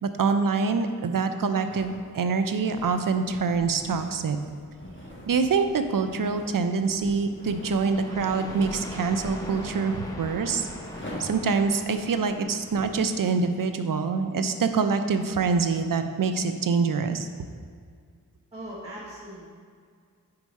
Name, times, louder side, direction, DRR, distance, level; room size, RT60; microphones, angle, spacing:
voice 1, 0.0-4.4 5.3-10.7 11.2-17.3, right 5 dB, 70° right, 8 dB, 0.5 m, -25 dB
sound 1, 1.7-13.1, left 1 dB, 35° left, 1.4 m, -45 dB
sound 2, 7.6-13.3, equal, 10° left, 0.8 m, -40 dB
voice 2, 18.5-19.5, right 1 dB, 15° right, -8 dB, 1.2 m, -39 dB
4.8 x 4.6 x 5.3 m, 2.1 s
wide cardioid pair, 60°, 35 cm